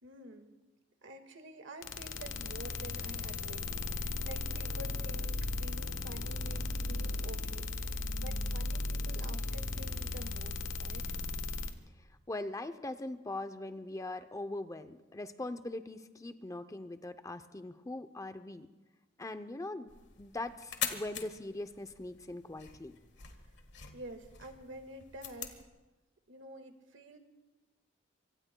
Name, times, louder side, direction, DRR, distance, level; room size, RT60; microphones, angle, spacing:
voice 1, 0.0-0.5 1.0-11.1 23.9-25.6 26.3-27.2, right 1 dB, 75° right, 6 dB, 1.7 m, -49 dB
sound 1, 1.8-11.7, left 2 dB, 80° left, 1.2 m, -36 dB
voice 2, 12.3-18.7 19.2-19.9 20.2-22.9, left 2 dB, 15° left, 9 dB, 0.6 m, -41 dB
sound 2, 19.9-25.7, left 8 dB, 65° left, 1.6 m, -44 dB
25.0 x 24.5 x 2.2 m, 1.2 s
head